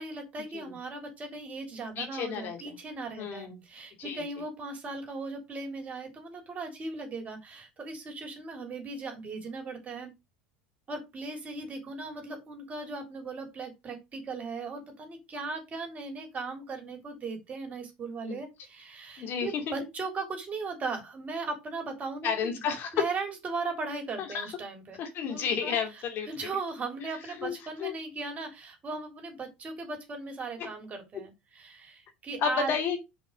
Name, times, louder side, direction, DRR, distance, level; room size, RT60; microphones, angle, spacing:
voice 1, 0.0-10.1 10.9-22.6 22.9-25.0 25.3-32.7, right 3 dB, 30° right, 3.5 m, -38 dB
voice 2, 2.0-2.6 3.2-3.6 4.0-4.2 18.2-18.4 19.2-19.6 22.2-22.9 24.2-24.4 25.0-26.3 27.4-27.9 30.6-30.7 32.4-33.0, left 6 dB, 50° left, 2.5 m, -32 dB
6.0 x 5.6 x 5.2 m
hypercardioid pair, 95°, 5 cm